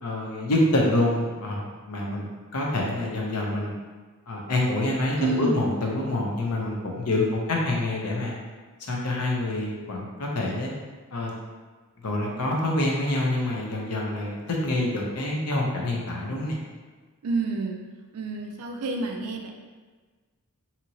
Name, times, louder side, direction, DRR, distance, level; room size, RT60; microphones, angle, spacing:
voice 1, 0.0-3.7 4.3-8.3 8.9-10.7 11.1-11.3 12.0-16.6, left 1 dB, 90° left, -1 dB, 0.6 m, -26 dB
voice 2, 5.2-5.6 17.2-17.8 18.1-19.5, right 3 dB, 75° right, 3 dB, 0.4 m, -28 dB
2.8 x 2.8 x 2.7 m, 1.4 s
head